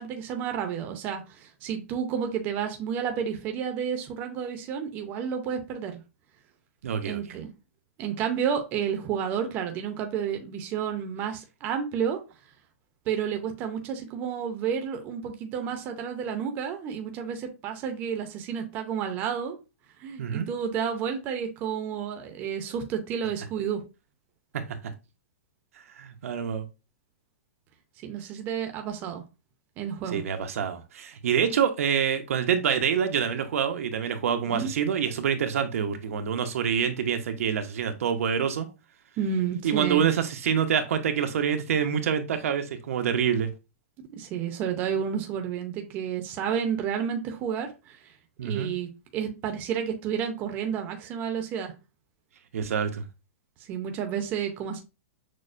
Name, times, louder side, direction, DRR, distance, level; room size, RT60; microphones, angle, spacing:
voice 1, 0.0-6.0 7.0-7.5 8.0-12.2 13.1-19.6 20.0-23.8 28.0-29.2 29.8-30.2 34.5-34.7 39.2-40.1 44.1-48.0 48.4-51.7 53.7-54.8, right 8 dB, 25° right, 0.6 m, -31 dB
voice 2, 6.8-7.2 20.2-20.5 24.5-24.6 26.0-26.7 30.1-38.7 39.6-43.5 48.4-48.7 52.5-53.0, right 7 dB, 75° right, 0.6 m, -26 dB
6.3 x 2.1 x 2.5 m
hypercardioid pair, 165°, 8 cm